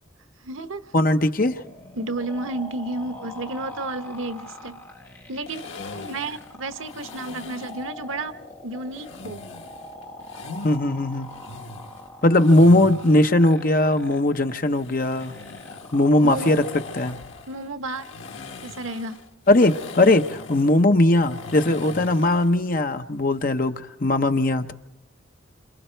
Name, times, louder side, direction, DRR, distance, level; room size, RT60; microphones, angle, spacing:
voice 1, 0.4-0.9 1.9-4.8 5.3-5.7 5.9-8.3 8.6-9.4 16.2-16.6 17.5-18.1 18.6-19.2, right 2 dB, 80° right, 10 dB, 1.0 m, -32 dB
voice 2, 0.9-1.6 10.6-11.3 12.2-15.3 15.9-16.6 17.0-17.2 19.5-24.7, left 1 dB, 45° left, 7 dB, 0.8 m, -19 dB
sound 1, 1.4-17.3, left 2 dB, 15° left, 2.5 m, -43 dB
sound 2, 5.5-7.9 8.9-10.8 11.2-13.2 14.6-22.5, left 3 dB, 75° left, 1.6 m, -40 dB
27.5 x 27.0 x 4.5 m, 0.83 s
head